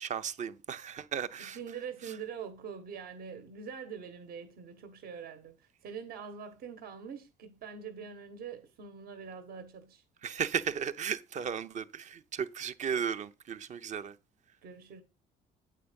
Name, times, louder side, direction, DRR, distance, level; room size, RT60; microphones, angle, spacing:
voice 1, 0.0-1.6 10.2-14.1, right 7 dB, 45° right, 0.8 m, -35 dB
voice 2, 1.4-10.0 14.6-15.0, right 6 dB, 65° right, 1.5 m, -44 dB
8.5 x 4.7 x 5.2 m
cardioid pair, 110°, 17 cm